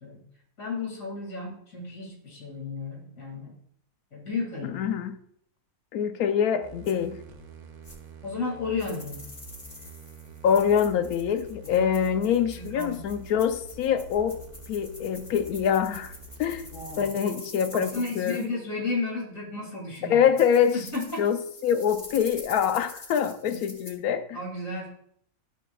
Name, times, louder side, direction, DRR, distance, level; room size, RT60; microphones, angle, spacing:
voice 1, 0.6-3.5 4.1-4.9 8.2-9.2 11.7-11.9 12.5-13.0 16.7-17.4 17.7-20.2 20.7-21.2 23.5-23.6 24.3-24.9, left 3 dB, 60° left, 2.7 m, -33 dB
voice 2, 4.7-5.2 5.9-7.2 10.4-14.4 14.7-16.1 16.4-16.7 17.0-18.4 20.1-24.4, left 8 dB, 80° left, 1.1 m, -25 dB
sound 1, 6.6-17.0, right 1 dB, 90° right, 1.3 m, -46 dB
sound 2, 6.8-6.9 7.8-8.0 8.8-18.5 19.9-20.0 20.4-23.9, left 2 dB, 25° left, 0.8 m, -46 dB
12.5 x 5.6 x 2.3 m
omnidirectional pair, 1.6 m